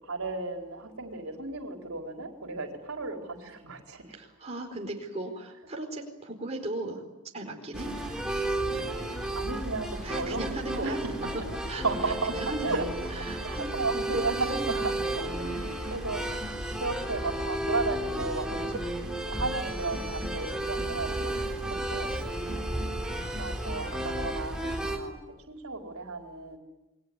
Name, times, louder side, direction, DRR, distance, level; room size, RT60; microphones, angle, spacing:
voice 1, 0.0-4.2 7.7-8.0 9.4-11.5 11.8-12.3 12.6-12.9 13.1-16.3 16.8-18.8 19.3-21.3 21.9-22.2 23.4-25.2 25.5-26.6, right 3 dB, 80° right, 3 dB, 4.3 m, -34 dB
voice 2, 4.1-7.0 7.3-7.9 10.0-11.0 11.7-11.8 12.3-12.8 13.2-13.9 14.1-14.7 15.3-15.6 21.2-21.9 22.4-22.6, right 2 dB, 30° right, 1 dB, 4.5 m, -37 dB
sound 1, 7.7-25.0, right 1 dB, 5° right, 3.7 m, -33 dB
28.0 x 22.5 x 9.6 m, 1.0 s
head